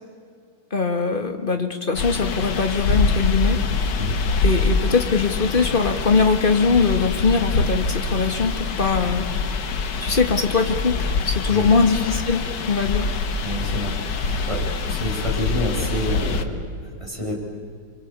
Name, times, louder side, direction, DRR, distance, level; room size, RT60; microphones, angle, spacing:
voice 1, 0.7-3.6 4.4-9.3 10.0-13.1, left 4 dB, 25° left, 5 dB, 1.9 m, -21 dB
sound 1, 1.9-16.4, left 4 dB, 60° left, 1.9 m, -25 dB
voice 2, 13.4-17.4, equal, 15° right, -1 dB, 5.4 m, -29 dB
26.0 x 24.5 x 8.4 m, 2.2 s
omnidirectional pair, 2.3 m